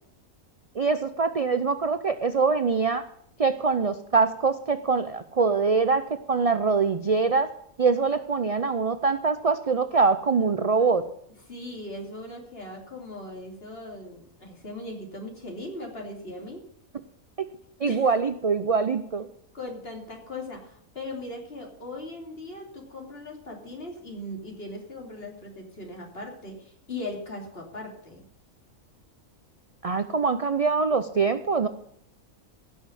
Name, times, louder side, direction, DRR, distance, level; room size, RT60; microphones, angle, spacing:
voice 1, 0.7-3.0 3.4-7.5 7.8-11.0 17.4-17.5 17.8-19.3 29.8-31.7, right 4 dB, 50° right, 10 dB, 0.4 m, -24 dB
voice 2, 11.5-16.6 17.8-18.0 19.5-28.2, left 2 dB, 45° left, 0 dB, 3.2 m, -39 dB
16.5 x 6.3 x 8.1 m, 0.70 s
omnidirectional pair, 1.5 m